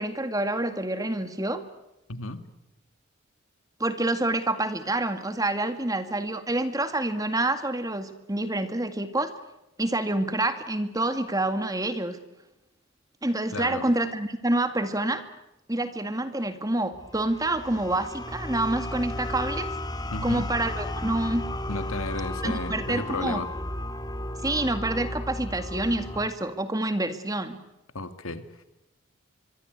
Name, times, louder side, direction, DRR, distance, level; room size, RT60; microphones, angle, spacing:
voice 1, 0.0-1.6 3.8-9.3 9.8-12.2 13.2-15.2 15.7-19.7 20.2-21.4 22.4-23.4 24.4-27.6, right 2 dB, 15° right, 9 dB, 2.0 m, -27 dB
voice 2, 2.1-2.4 13.5-13.9 20.1-20.5 21.7-23.5 27.9-28.6, left 2 dB, 85° left, 10 dB, 2.2 m, -33 dB
sound 1, 16.9-26.3, left 1 dB, 20° left, 1.8 m, -34 dB
25.0 x 24.0 x 8.2 m, 0.92 s
head